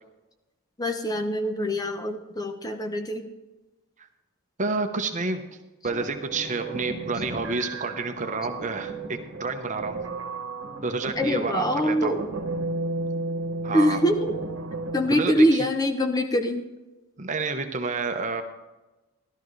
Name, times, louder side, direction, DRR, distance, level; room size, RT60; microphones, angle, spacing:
voice 1, 0.8-3.3 11.2-12.2 13.7-14.3 14.9-16.7, equal, 20° left, 6 dB, 0.6 m, -24 dB
voice 2, 4.6-5.5 5.8-10.0 10.8-12.1 13.6-14.0 15.1-15.7 17.2-18.4, right 3 dB, 35° right, 6 dB, 0.9 m, -29 dB
sound 1, 5.9-15.4, right 2 dB, 65° right, 1.3 m, -34 dB
14.0 x 12.0 x 3.2 m, 1.1 s
head